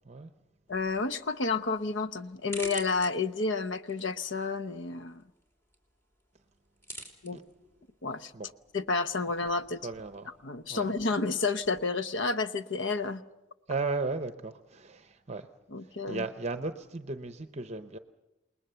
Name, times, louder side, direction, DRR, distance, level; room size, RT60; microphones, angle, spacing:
voice 1, 0.7-5.2 7.2-7.4 8.0-8.3 8.7-9.8 10.4-13.2 15.7-16.2, left 3 dB, 65° left, 11 dB, 0.9 m, -30 dB
sound 1, 0.7-11.9, equal, 15° left, 3.1 m, -50 dB
voice 2, 9.8-10.3 10.7-10.9 13.7-15.5 15.8-18.0, right 3 dB, 35° right, 9 dB, 0.8 m, -35 dB
28.5 x 20.0 x 6.9 m, 1.0 s
head